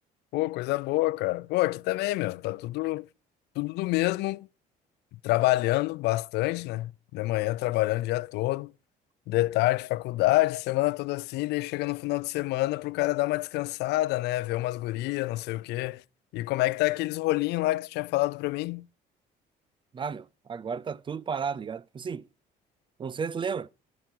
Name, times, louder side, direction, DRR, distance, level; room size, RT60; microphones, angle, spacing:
voice 1, 0.3-3.1 3.6-4.5 5.2-8.7 9.3-16.0 16.3-18.9, left 19 dB, 85° left, 0.5 m, -27 dB
voice 2, 19.9-22.3 23.0-23.7, right 6 dB, 30° right, 0.5 m, -33 dB
13.0 x 6.1 x 7.2 m
cardioid pair, 110°, 17 cm